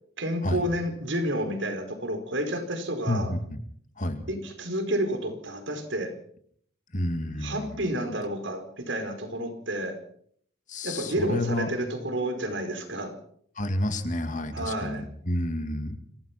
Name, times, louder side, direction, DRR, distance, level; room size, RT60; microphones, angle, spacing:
voice 1, 0.2-3.3 4.3-6.1 7.4-10.0 10.8-13.1 14.5-15.1, right 1 dB, 75° right, 6 dB, 4.8 m, -30 dB
voice 2, 3.1-3.6 4.0-4.2 6.9-7.8 10.7-11.7 13.6-16.0, left 1 dB, 40° left, 8 dB, 2.4 m, -30 dB
26.5 x 17.5 x 6.0 m, 0.64 s
head